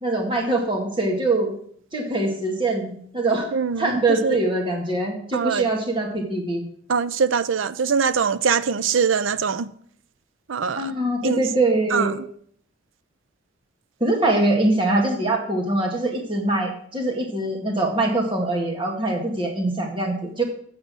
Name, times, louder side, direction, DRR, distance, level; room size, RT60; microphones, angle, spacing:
voice 1, 0.0-1.5 1.9-6.6 10.8-12.2 14.0-20.4, right 2 dB, 25° right, 1.9 m, -23 dB
voice 2, 3.5-4.4 5.3-5.7 6.9-9.7 10.5-10.9 11.2-11.4 11.9-12.2, right 6 dB, 85° right, 0.5 m, -23 dB
8.1 x 7.6 x 6.2 m
head